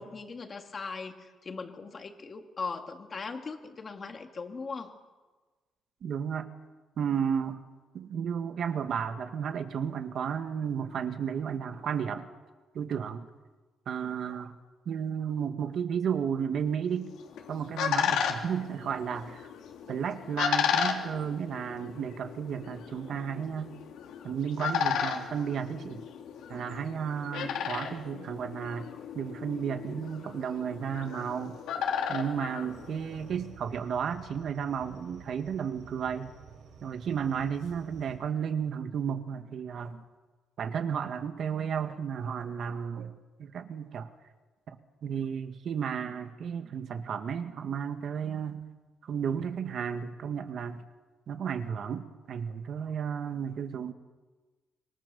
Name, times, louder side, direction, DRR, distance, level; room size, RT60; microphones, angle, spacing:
voice 1, 0.0-5.0, left 4 dB, 30° left, 5 dB, 2.3 m, -39 dB
voice 2, 6.0-6.5 7.0-7.6 7.9-12.3 12.7-13.3 13.9-14.5 14.9-17.1 17.5-19.5 19.9-23.7 24.2-26.0 26.5-28.9 29.1-31.6 32.1-36.3 36.8-40.0 40.6-44.1 44.7-48.6 49.0-50.8 51.3-53.9, right 7 dB, 50° right, 8 dB, 1.9 m, -33 dB
sound 1, 17.1-33.4, left 8 dB, 85° left, 3.4 m, -34 dB
sound 2, 32.7-38.2, right 6 dB, 85° right, 5.9 m, -51 dB
26.0 x 24.5 x 7.1 m, 1.3 s
cardioid pair, 155°, 0 cm